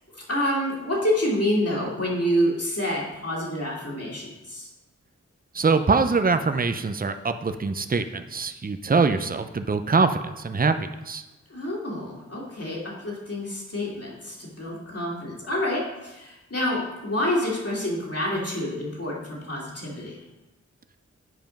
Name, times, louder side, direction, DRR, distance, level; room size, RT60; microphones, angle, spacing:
voice 1, 0.1-4.7 11.5-20.2, equal, 55° left, -4 dB, 2.8 m, -28 dB
voice 2, 5.5-11.2, right 4 dB, 30° right, 9 dB, 0.6 m, -23 dB
7.8 x 5.0 x 5.2 m, 1.0 s
wide cardioid pair, 45°, 30 cm